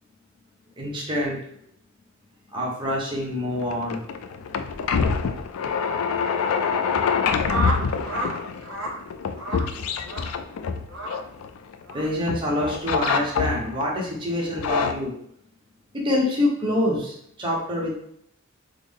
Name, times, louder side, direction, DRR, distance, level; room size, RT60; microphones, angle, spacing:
voice 1, 0.8-1.4 2.5-4.0 11.9-15.1 15.9-17.9, left 1 dB, 25° right, -4 dB, 0.9 m, -26 dB
sound 1, 3.5-11.9 12.3-13.9 14.4-14.9, left 5 dB, 90° left, 0.3 m, -26 dB
sound 2, 7.5-8.3 8.6-8.9 9.4-9.7 10.0-10.3 10.9-11.1 11.9-12.1 13.0-13.2, right 1 dB, 60° right, 0.9 m, -29 dB
3.8 x 2.0 x 3.4 m, 0.70 s
head